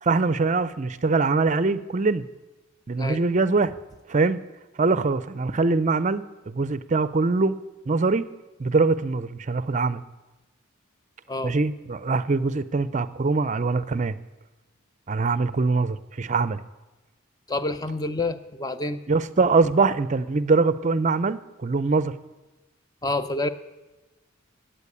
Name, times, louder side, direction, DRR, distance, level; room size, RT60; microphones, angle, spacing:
voice 1, 0.0-2.2 2.9-3.7 4.1-4.4 4.8-7.5 7.9-8.3 8.6-10.0 11.4-14.2 15.1-16.6 19.1-22.1, right 3 dB, 35° right, 15 dB, 0.5 m, -23 dB
voice 2, 17.5-19.0 23.0-23.5, left 2 dB, 20° left, 10 dB, 0.6 m, -28 dB
15.0 x 9.0 x 8.5 m, 1.1 s
head